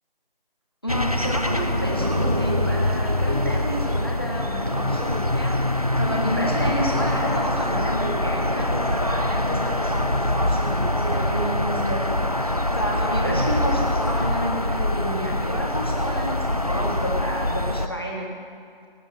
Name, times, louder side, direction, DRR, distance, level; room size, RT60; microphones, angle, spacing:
voice 1, 0.8-12.1 12.3-18.3, equal, 25° left, -2 dB, 1.7 m, -30 dB
sound 1, 0.9-17.9, left 1 dB, 40° right, 0.5 m, -24 dB
18.5 x 7.3 x 7.3 m, 2.3 s
figure-of-eight pair, 175°, 29 cm